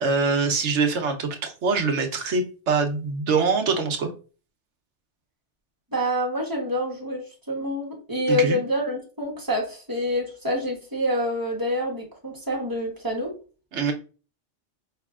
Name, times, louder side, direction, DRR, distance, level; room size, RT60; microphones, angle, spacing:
voice 1, 0.0-4.1 8.3-8.6 13.7-13.9, right 4 dB, 75° right, 4 dB, 1.0 m, -24 dB
voice 2, 5.9-13.3, equal, 20° right, -1 dB, 1.0 m, -27 dB
4.9 x 3.3 x 2.4 m, 0.36 s
omnidirectional pair, 1.2 m